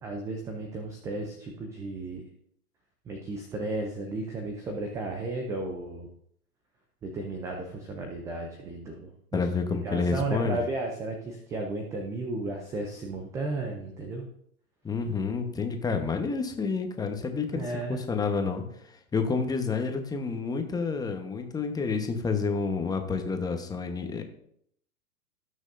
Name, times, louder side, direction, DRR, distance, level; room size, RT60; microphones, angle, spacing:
voice 1, 0.0-2.2 3.1-6.1 7.0-9.5 9.8-14.3 17.5-18.0, right 2 dB, 5° right, 3 dB, 0.4 m, -34 dB
voice 2, 9.3-10.6 14.8-17.6 17.9-24.2, left 4 dB, 10° left, 5 dB, 1.0 m, -29 dB
18.0 x 6.3 x 2.6 m, 0.69 s
hypercardioid pair, 115°, 44 cm